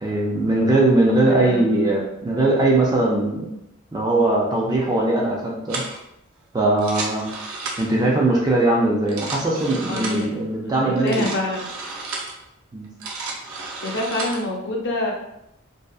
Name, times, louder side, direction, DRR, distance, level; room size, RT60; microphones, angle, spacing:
voice 1, 0.0-3.5 3.9-5.8 6.5-7.3 7.8-11.2 12.7-12.9, right 2 dB, 20° right, -3 dB, 0.4 m, -20 dB
voice 2, 1.3-1.9 9.9-10.3 10.7-11.7 13.8-15.1, left 1 dB, 55° left, -1 dB, 0.5 m, -27 dB
sound 1, 5.7-6.0 6.7-8.0 8.9-10.3 11.0-12.4 12.8-14.4, right 3 dB, 75° right, 0.5 m, -32 dB
2.6 x 2.1 x 2.3 m, 0.82 s
head